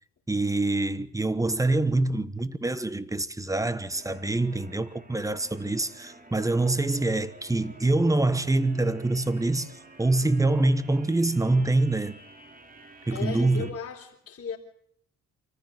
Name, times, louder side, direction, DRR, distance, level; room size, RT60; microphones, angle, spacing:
voice 1, 0.3-12.2 13.1-13.7, right 2 dB, 10° right, 1.2 m, -25 dB
sound 1, 3.9-13.7, right 2 dB, 30° right, 3.5 m, -50 dB
voice 2, 13.1-14.6, left 7 dB, 50° left, 4.2 m, -36 dB
25.0 x 14.5 x 8.0 m
cardioid pair, 90°, 30 cm